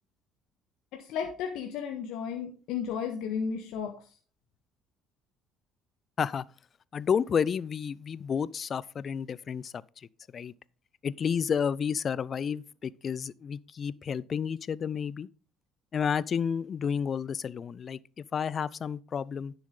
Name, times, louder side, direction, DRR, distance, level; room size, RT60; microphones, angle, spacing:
voice 1, 1.0-3.9, left 7 dB, 65° left, 1.5 m, -33 dB
voice 2, 6.9-10.5 11.0-15.3 15.9-19.5, left 7 dB, 45° left, 0.5 m, -31 dB
11.0 x 7.1 x 3.8 m
hypercardioid pair, 60°, 0 cm